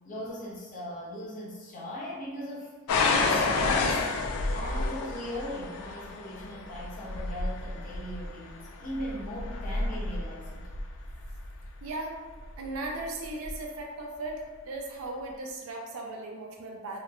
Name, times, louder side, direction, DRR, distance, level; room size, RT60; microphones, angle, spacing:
voice 1, 0.0-2.7 3.2-4.1 4.5-10.7, equal, 40° left, -6 dB, 0.6 m, -39 dB
sound 1, 2.9-11.7 12.4-12.9 13.4-13.6, left 3 dB, 80° left, 0.3 m, -30 dB
voice 2, 11.8-12.2 12.6-17.0, right 2 dB, 80° right, 0 dB, 0.4 m, -37 dB
2.9 x 2.1 x 2.3 m, 1.3 s
head